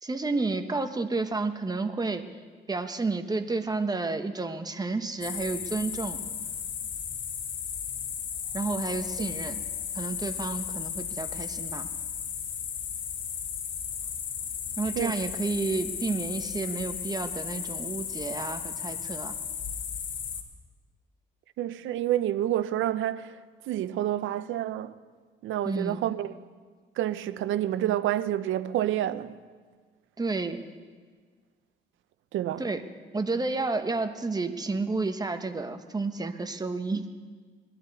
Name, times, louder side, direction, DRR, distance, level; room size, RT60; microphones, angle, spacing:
voice 1, 0.0-2.3 2.7-6.2 8.5-9.6 9.9-11.9 14.8-19.4 25.6-26.1 30.2-30.6 32.6-32.8 33.1-37.1, right 3 dB, 20° right, 1.0 m, -31 dB
sound 1, 5.2-20.4, left 8 dB, 70° left, 1.5 m, -35 dB
voice 2, 21.6-23.4 23.7-24.9 25.4-26.3 27.0-29.3 32.3-32.6, right 12 dB, 80° right, 0.6 m, -28 dB
20.0 x 12.5 x 4.1 m
cardioid pair, 90°, 20 cm